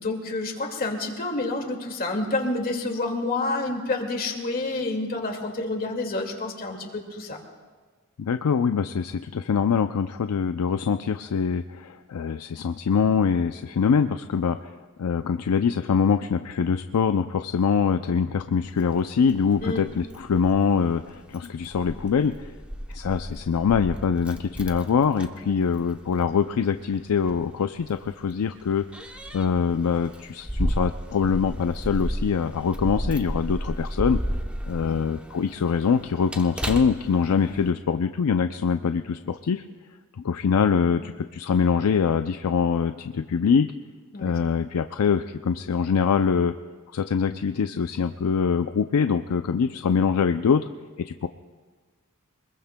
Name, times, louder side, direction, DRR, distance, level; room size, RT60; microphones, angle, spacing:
voice 1, 0.0-7.4 19.6-19.8 25.4-25.6 34.8-35.0 44.1-44.4, left 2 dB, 40° left, 2 dB, 2.0 m, -29 dB
voice 2, 8.2-14.7 15.0-22.5 22.9-28.8 29.3-34.2 34.7-39.6 40.2-43.7 44.2-46.5 46.9-50.7 51.0-51.3, left 6 dB, 85° left, 9 dB, 0.4 m, -24 dB
Keys jangling, 18.6-37.7, equal, 5° right, 0.8 m, -34 dB
26.0 x 21.0 x 2.2 m, 1.4 s
head